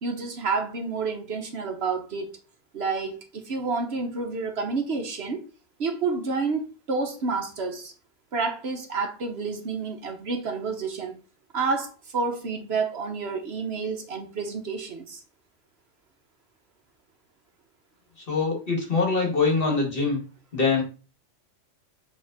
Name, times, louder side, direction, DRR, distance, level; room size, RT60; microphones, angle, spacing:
voice 1, 0.0-2.4 2.7-5.4 5.8-7.9 8.3-11.2 11.5-15.2, right 4 dB, 60° right, 1.1 m, -29 dB
voice 2, 18.3-20.2 20.5-20.8, left 4 dB, 45° left, 2.0 m, -23 dB
7.3 x 3.5 x 4.0 m
omnidirectional pair, 1.3 m